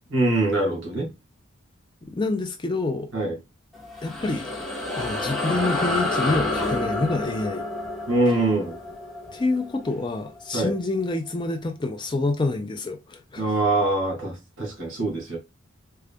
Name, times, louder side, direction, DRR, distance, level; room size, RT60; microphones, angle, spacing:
voice 1, 0.1-1.1 3.1-3.4 8.1-8.8 10.5-10.7 13.4-15.4, right 2 dB, 65° right, 1.7 m, -23 dB
voice 2, 2.1-3.1 4.0-4.5 5.0-7.6 9.3-13.4, left 2 dB, 20° left, 0.4 m, -27 dB
sound 1, 3.7-10.6, left 2 dB, ahead, 0.8 m, -29 dB
3.7 x 2.2 x 3.4 m
head